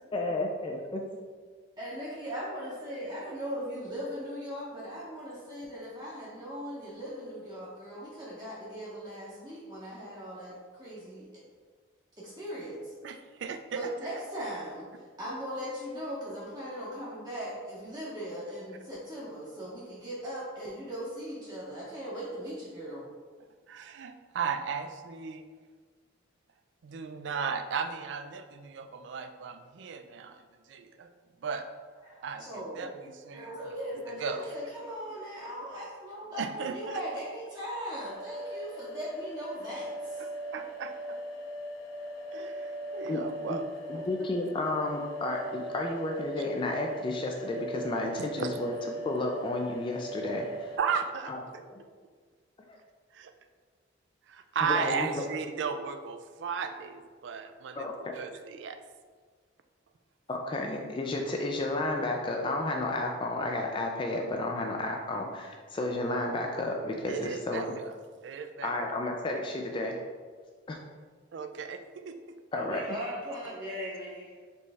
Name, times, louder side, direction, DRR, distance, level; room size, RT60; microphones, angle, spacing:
voice 1, 0.1-1.0 43.1-43.2 43.5-43.6 43.9-50.8 51.3-51.4 51.7-51.8 52.7-52.8 54.6-55.3 57.7-58.1 60.3-67.8 68.6-70.0 70.7-70.8 72.5-73.0, left 2 dB, 25° left, 2 dB, 0.3 m, -32 dB
voice 2, 1.8-11.3 12.2-12.9 13.7-23.0 32.0-32.9 33.3-40.3 72.5-74.4, equal, 20° right, -7 dB, 0.7 m, -39 dB
voice 3, 13.0-14.2 23.7-25.5 26.8-31.1 31.4-31.7 32.2-33.5 34.1-34.6 36.4-37.0 40.2-41.2 42.3-44.3 48.4-48.6 50.8-51.6 53.1-53.3 54.3-57.9 58.1-58.8 67.1-67.9 68.2-68.7 71.3-72.4, right 6 dB, 65° right, 7 dB, 0.3 m, -36 dB
sound 1, 38.0-50.8, equal, 85° left, 0.6 m, -40 dB
4.2 x 3.1 x 3.4 m, 1.5 s
head